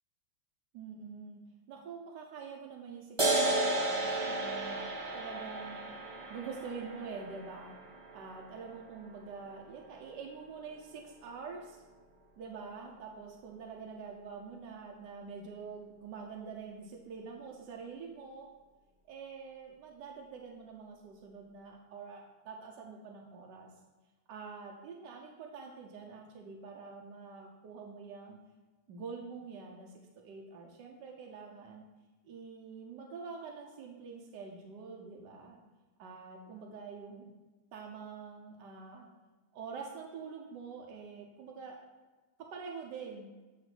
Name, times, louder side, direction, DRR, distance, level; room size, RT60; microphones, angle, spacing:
voice 1, 0.7-1.4 1.7-4.8 5.1-5.9 6.3-7.8 8.1-11.8 12.4-18.5 19.1-23.7 24.3-28.4 28.9-29.9 30.2-31.8 32.2-35.6 36.0-37.3 37.7-39.1 39.5-41.8 42.5-43.3, right 5 dB, 70° right, 0 dB, 1.3 m, -46 dB
sound 1, 3.2-10.2, right 2 dB, 35° right, 0.5 m, -34 dB
8.8 x 3.1 x 5.9 m, 1.2 s
omnidirectional pair, 2.0 m